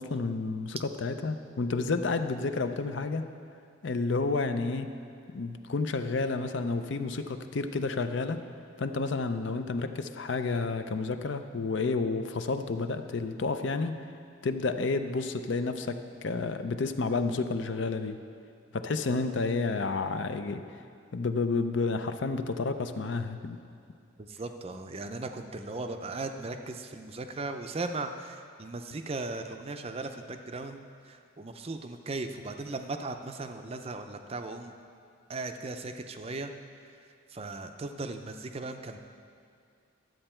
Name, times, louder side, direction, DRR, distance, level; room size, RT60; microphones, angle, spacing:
voice 1, 0.0-3.2 3.8-5.0 5.3-8.4 8.8-13.9 14.4-18.2 18.7-20.6 21.1-23.6, left 3 dB, 60° left, 9 dB, 0.5 m, -30 dB
voice 2, 24.2-34.7 35.3-36.5 37.3-39.0, right 3 dB, 30° right, 6 dB, 0.5 m, -37 dB
12.5 x 7.8 x 4.4 m, 2.4 s
head